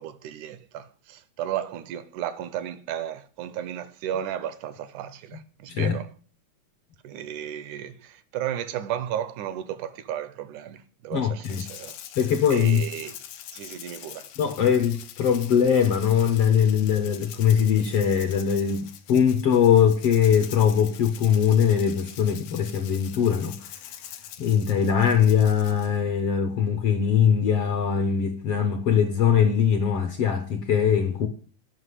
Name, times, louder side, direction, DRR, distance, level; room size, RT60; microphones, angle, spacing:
voice 1, 0.0-6.1 7.0-12.0 12.5-13.2 13.5-14.3, right 10 dB, 80° right, 2.0 m, -34 dB
voice 2, 11.1-11.6 12.2-12.8 14.4-23.9 24.4-31.3, left 8 dB, 70° left, 1.5 m, -21 dB
Rattle (instrument), 11.4-26.0, left 11 dB, 90° left, 2.6 m, -43 dB
9.4 x 5.7 x 8.1 m
omnidirectional pair, 3.7 m